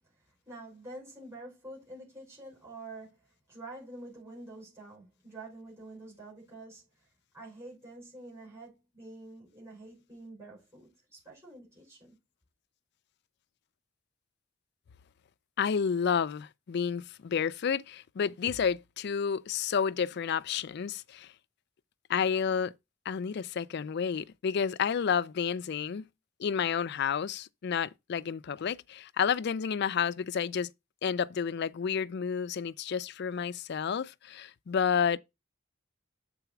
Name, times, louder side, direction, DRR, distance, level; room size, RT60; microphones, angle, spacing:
voice 1, 0.5-3.2 3.5-6.9 7.3-12.1, right 2 dB, 15° right, 5.6 m, -47 dB
voice 2, 15.6-21.3 22.1-22.7 23.1-26.1 26.4-30.7 31.0-35.2, left 7 dB, 55° left, 0.4 m, -30 dB
6.9 x 4.0 x 5.8 m
head